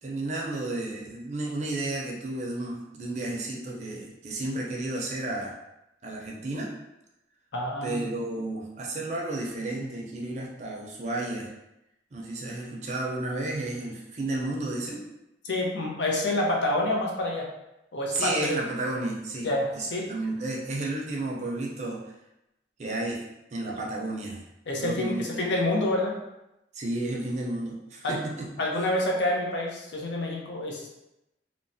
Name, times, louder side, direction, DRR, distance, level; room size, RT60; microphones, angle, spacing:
voice 1, 0.0-5.5 6.0-6.8 7.8-11.5 12.1-15.1 18.1-22.0 22.8-23.2 23.5-24.4 24.8-25.4 26.7-28.5, right 2 dB, 40° right, -2 dB, 0.5 m, -32 dB
voice 2, 7.5-8.1 15.4-17.5 17.9-18.6 19.4-20.1 24.7-26.2 28.0-28.1 28.6-30.9, left 1 dB, 85° left, -1 dB, 0.6 m, -28 dB
3.0 x 2.1 x 2.6 m, 0.90 s
head